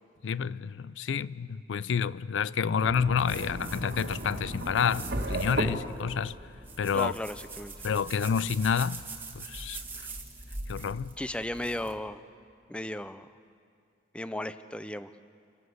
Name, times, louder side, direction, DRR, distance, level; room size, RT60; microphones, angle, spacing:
voice 1, 0.2-6.4 6.8-7.1 7.8-9.1 9.4-9.8 10.7-11.1, left 6 dB, 85° left, 0.4 m, -29 dB
sound 1, 2.8-8.5, right 1 dB, 60° right, 1.5 m, -36 dB
sound 2, 3.2-11.9, right 3 dB, 10° right, 1.6 m, -44 dB
voice 2, 6.9-7.7 11.2-12.2 12.7-13.3 14.1-15.1, left 1 dB, 5° left, 0.4 m, -35 dB
27.5 x 13.0 x 7.9 m
head